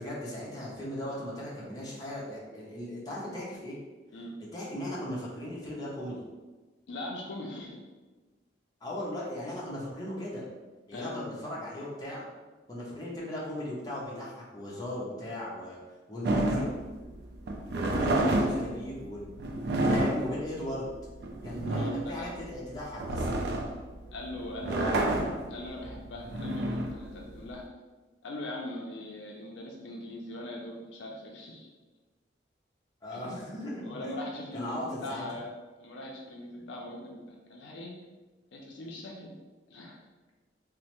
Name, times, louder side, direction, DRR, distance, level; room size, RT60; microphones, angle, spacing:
voice 1, 0.0-3.7 4.4-6.2 8.8-10.5 10.9-12.3 12.7-15.8 16.1-16.7 17.9-19.3 19.8-20.9 21.4-23.3 24.6-25.5 33.0-34.2 34.5-35.2 36.6-36.7, left 1 dB, 20° left, -6 dB, 0.7 m, -37 dB
voice 2, 6.9-7.8 10.9-11.2 21.7-22.3 24.1-25.1 25.5-27.6 28.2-31.7 33.1-33.2 33.8-35.5 35.8-37.9 38.5-39.3 39.7-40.0, left 1 dB, 75° left, -1 dB, 0.4 m, -40 dB
sound 1, 16.2-27.6, right 1 dB, 60° right, 0.3 m, -30 dB
3.1 x 2.0 x 2.9 m, 1.2 s
head